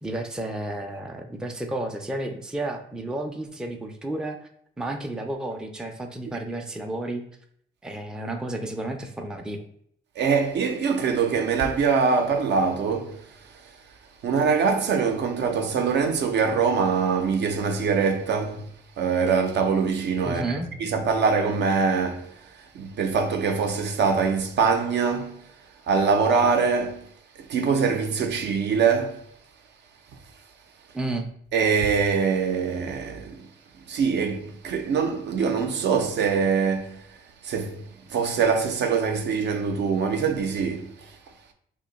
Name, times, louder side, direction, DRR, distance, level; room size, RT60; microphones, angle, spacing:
voice 1, 0.0-4.5 4.8-7.2 7.8-9.6 20.2-20.7 30.9-31.3, right 1 dB, 5° right, 0.4 m, -32 dB
voice 2, 10.2-13.2 14.2-18.7 19.0-22.3 22.7-25.4 25.9-27.1 27.5-29.2 31.5-33.4 33.9-37.0 37.4-37.8 38.1-40.9, right 5 dB, 60° right, 0.5 m, -23 dB
2.7 x 2.2 x 3.8 m
cardioid pair, 90°, 20 cm